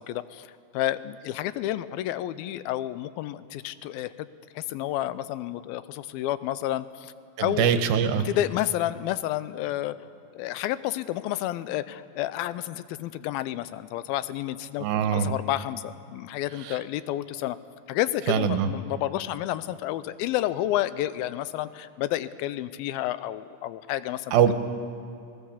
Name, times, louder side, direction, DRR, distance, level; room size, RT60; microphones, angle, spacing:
voice 1, 0.0-4.3 4.5-7.1 7.4-7.8 8.3-10.0 10.3-17.6 17.9-24.3, left 13 dB, 85° left, 15 dB, 2.5 m, -30 dB
voice 2, 7.4-8.3 14.8-15.3 16.6-16.8 18.3-18.7 24.3-24.5, right 8 dB, 90° right, 9 dB, 3.0 m, -23 dB
28.0 x 17.5 x 7.2 m, 2.6 s
omnidirectional pair, 4.2 m